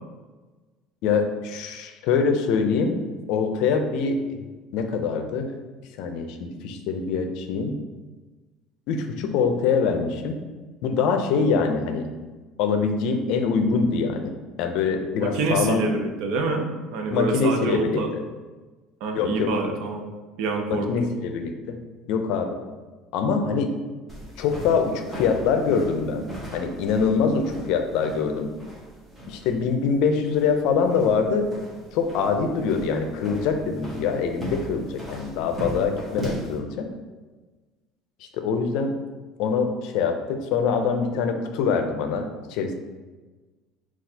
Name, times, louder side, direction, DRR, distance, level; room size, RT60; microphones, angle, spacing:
voice 1, 1.0-3.0 3.3-4.4 4.7-5.5 6.0-7.8 8.9-10.4 10.8-12.1 12.6-14.3 14.6-15.9 17.1-18.0 19.1-19.5 20.7-21.8 22.1-22.6 23.1-23.7 24.4-26.3 26.5-28.5 29.3-31.5 31.9-36.9 38.4-38.9 39.4-42.7, left 5 dB, 65° left, 5 dB, 0.5 m, -24 dB
voice 2, 15.2-18.1 19.0-20.0 20.4-21.1, right 3 dB, 65° right, 3 dB, 0.6 m, -26 dB
sound 1, 24.1-36.6, equal, 10° right, 0.9 m, -38 dB
6.0 x 2.4 x 2.7 m, 1.3 s
cardioid pair, 150°, 0 cm